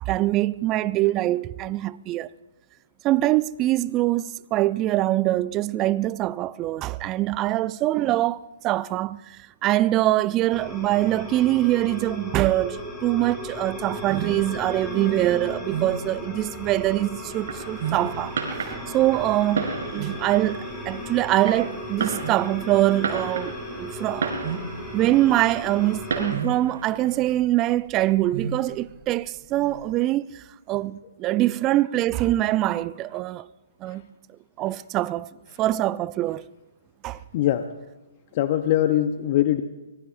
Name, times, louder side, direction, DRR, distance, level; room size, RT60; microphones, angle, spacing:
voice 1, 0.0-2.3 3.0-24.6 24.9-33.5 33.8-34.0 34.6-35.3 35.6-36.4 37.0-37.2, right 15 dB, 25° right, 0.4 m, -24 dB
sound 1, 10.5-26.4, left 1 dB, 10° left, 3.2 m, -36 dB
sound 2, 13.5-29.9, right 6 dB, 40° right, 2.6 m, -36 dB
Fireworks, 17.3-27.3, right 5 dB, 60° right, 3.7 m, -34 dB
voice 2, 37.3-37.7 38.3-39.6, left 12 dB, 40° left, 0.8 m, -22 dB
24.5 x 21.0 x 2.6 m
figure-of-eight pair, 130°, 0 cm